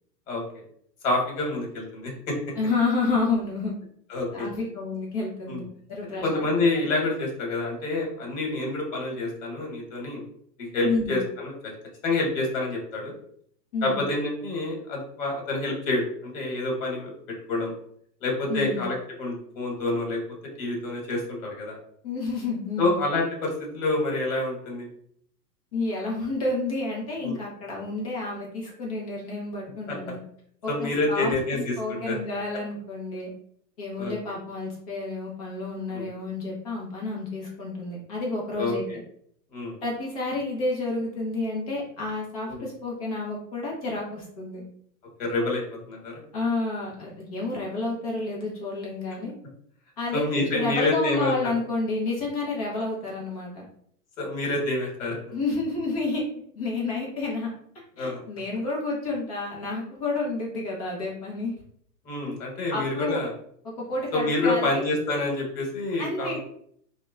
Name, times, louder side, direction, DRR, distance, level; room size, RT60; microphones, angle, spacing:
voice 1, 1.0-2.3 4.1-4.5 5.5-5.6 6.2-10.2 10.6-11.7 12.0-13.1 13.8-17.1 17.5-17.7 18.2-20.2 20.6-21.8 22.8-24.9 27.2-27.4 29.9-30.0 30.7-32.2 34.0-34.1 35.9-36.1 38.5-39.0 39.5-39.7 42.5-42.6 45.2-45.6 45.9-46.2 50.1-51.5 54.2-55.4 58.0-58.2 62.0-63.3 64.1-66.4, left 2 dB, 55° left, 0 dB, 1.2 m, -27 dB
voice 2, 2.6-3.7 4.3-5.6 5.9-6.4 10.8-11.2 13.7-14.0 18.5-18.8 22.0-23.0 25.7-30.2 30.6-31.3 31.8-33.3 33.8-38.9 39.8-44.6 46.3-49.3 50.0-53.6 55.3-56.2 56.6-57.5 58.0-61.5 62.7-63.2 63.8-64.8 66.0-66.4, left 3 dB, 25° left, -3 dB, 0.5 m, -30 dB
2.8 x 2.1 x 2.2 m, 0.66 s
hypercardioid pair, 145°, 48 cm